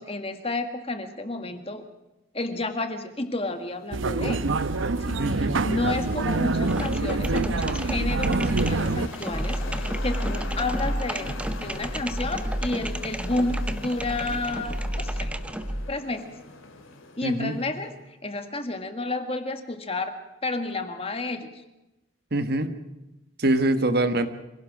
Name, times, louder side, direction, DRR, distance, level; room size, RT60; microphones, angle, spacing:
voice 1, 0.0-1.8 2.3-4.5 5.0-11.4 11.6-15.3 15.9-16.3 17.2-17.9 18.2-20.2 20.4-21.5, left 2 dB, 30° left, 7 dB, 1.7 m, -31 dB
sound 1, 3.4-18.0, left 3 dB, 90° left, 2.9 m, -42 dB
sound 2, 3.9-9.1, right 3 dB, 75° right, 0.8 m, -26 dB
voice 2, 5.2-5.6 17.2-17.6 22.3-22.7 23.4-24.3, right 1 dB, 50° right, 9 dB, 1.4 m, -24 dB
sound 3, 6.6-15.9, equal, 5° right, 0.7 m, -31 dB
25.0 x 17.5 x 6.0 m, 0.98 s
head